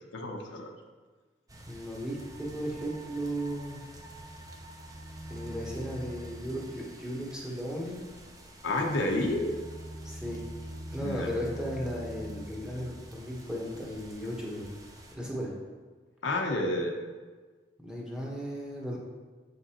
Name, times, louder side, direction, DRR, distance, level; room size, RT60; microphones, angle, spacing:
voice 1, 0.1-0.7 8.6-9.5 11.0-11.3 16.2-16.9, left 1 dB, 90° left, 1 dB, 0.8 m, -29 dB
sound 1, 1.5-15.2, equal, 20° right, 0.6 m, -45 dB
voice 2, 1.7-3.8 5.3-8.0 10.0-10.4 10.9-14.6 15.1-15.5 17.8-19.0, equal, 5° right, -4 dB, 1.1 m, -35 dB
7.2 x 5.3 x 2.9 m, 1.4 s
head